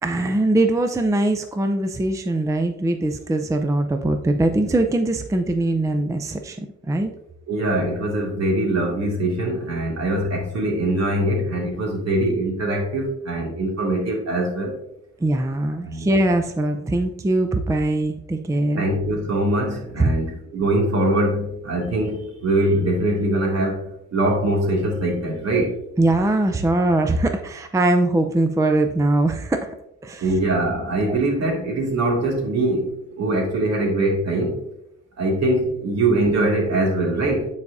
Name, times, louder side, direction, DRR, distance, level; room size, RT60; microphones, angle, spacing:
voice 1, 0.0-7.1 15.2-18.8 20.0-20.1 26.0-29.8 30.0-30.2 31.1-31.2, right 2 dB, 10° right, 6 dB, 0.5 m, -21 dB
voice 2, 7.5-14.8 15.8-16.1 18.8-25.8 30.2-34.6 35.2-37.5, right 1 dB, 60° right, -1 dB, 2.4 m, -22 dB
9.4 x 4.8 x 2.7 m, 0.81 s
cardioid pair, 90°, 30 cm